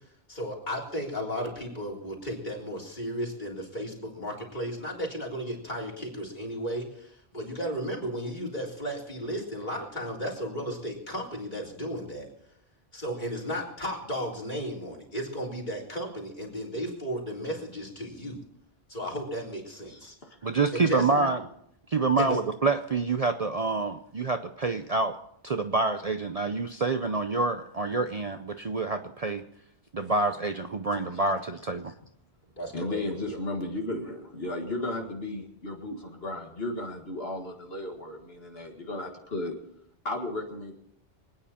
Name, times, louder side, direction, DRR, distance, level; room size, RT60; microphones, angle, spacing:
voice 1, 0.3-12.3 12.9-18.4 18.9-20.2 20.7-21.3 22.2-22.4 32.6-33.2, equal, 40° left, -1 dB, 3.9 m, -34 dB
voice 2, 19.9-20.4 30.9-31.2 32.7-39.6 40.0-40.7, left 2 dB, 60° left, 1 dB, 2.1 m, -35 dB
voice 3, 20.4-21.4 21.9-25.2 25.4-29.5 29.9-31.9, right 3 dB, 40° right, 7 dB, 0.7 m, -27 dB
25.0 x 9.7 x 4.3 m, 0.73 s
omnidirectional pair, 1.1 m